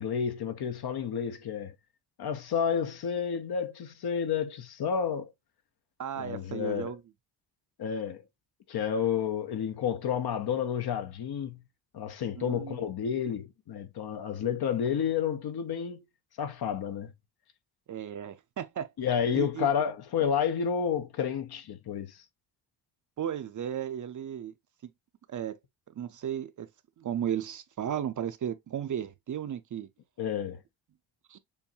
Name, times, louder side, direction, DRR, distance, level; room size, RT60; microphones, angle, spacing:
voice 1, 0.0-1.7 2.2-5.3 6.2-7.0 7.8-8.2 8.7-11.6 11.9-16.0 16.4-17.1 19.0-22.2 30.2-30.6, left 7 dB, 55° left, 0.9 m, -30 dB
voice 2, 6.0-7.0 12.4-12.8 17.9-18.9 19.3-19.7 23.2-24.5 24.8-24.9 25.3-25.6 26.0-26.7 27.0-29.9 31.3-31.4, right 9 dB, 40° right, 0.6 m, -34 dB
7.1 x 2.6 x 2.7 m
cardioid pair, 115°, 45 cm